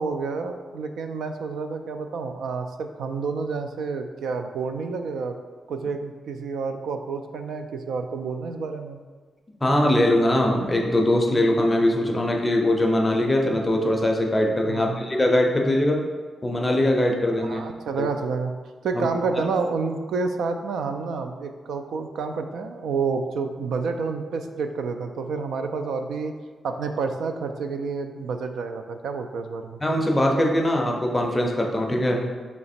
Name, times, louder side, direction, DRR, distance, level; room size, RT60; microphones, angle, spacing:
voice 1, 0.0-5.4 5.7-9.0 14.7-15.0 17.4-18.5 18.8-26.3 26.6-29.8, right 4 dB, 90° right, 6 dB, 0.3 m, -29 dB
voice 2, 9.6-16.0 16.4-17.6 18.0-18.1 18.9-19.1 19.4-19.5 29.8-32.2, left 1 dB, 15° left, 1 dB, 0.5 m, -21 dB
3.3 x 2.9 x 4.2 m, 1.5 s
wide cardioid pair, 155°, 0 cm